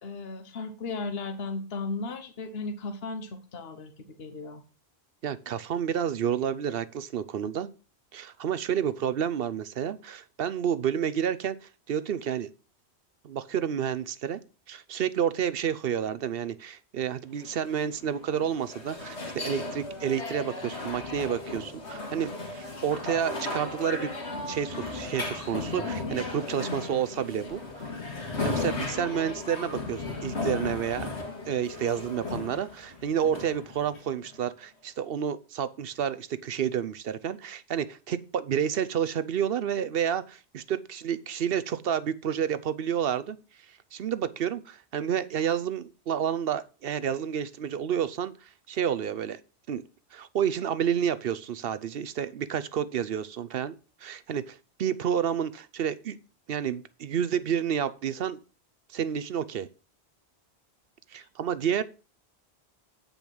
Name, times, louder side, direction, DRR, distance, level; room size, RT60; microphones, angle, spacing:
voice 1, 0.0-4.6 61.2-61.3, left 3 dB, 65° left, 1.3 m, -36 dB
voice 2, 5.2-7.7 8.1-12.5 13.2-14.4 14.7-24.1 24.5-27.8 28.4-31.1 31.5-43.4 43.9-49.4 49.7-49.8 50.1-56.2 56.5-58.4 58.9-59.7 61.1-61.8, right 8 dB, 65° right, 0.8 m, -30 dB
sound 1, 17.4-34.4, left 3 dB, 80° left, 2.3 m, -36 dB
8.9 x 5.3 x 6.1 m
omnidirectional pair, 1.1 m